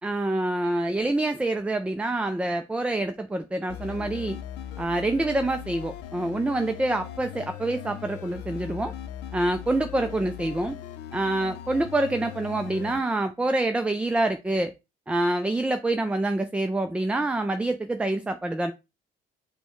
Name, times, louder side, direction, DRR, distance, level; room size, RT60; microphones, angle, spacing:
voice 1, 0.0-4.4 4.8-8.9 9.3-10.8 11.1-14.7 15.1-18.7, right 2 dB, 5° right, 0.3 m, -26 dB
sound 1, 3.7-13.0, left 11 dB, 85° left, 0.6 m, -39 dB
5.4 x 2.2 x 4.5 m
cardioid pair, 110°, 17 cm